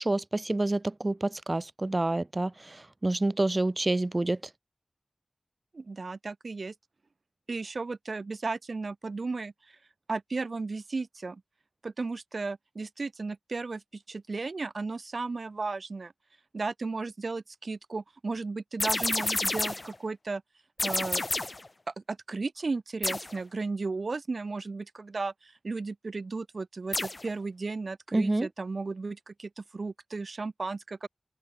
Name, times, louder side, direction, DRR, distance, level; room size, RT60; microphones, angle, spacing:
voice 1, 0.0-4.4 28.1-28.5, right 2 dB, 40° right, 1.8 m, -28 dB
voice 2, 5.7-6.7 7.5-9.8 10.1-11.4 11.8-16.1 16.5-20.4 20.8-21.2 21.9-31.1, right 3 dB, 70° right, 5.9 m, -35 dB
sound 1, 18.8-19.9 20.8-21.7 23.0-23.4 26.9-27.3, left 2 dB, 45° left, 1.1 m, -30 dB
open air
wide cardioid pair, 55°, 0 cm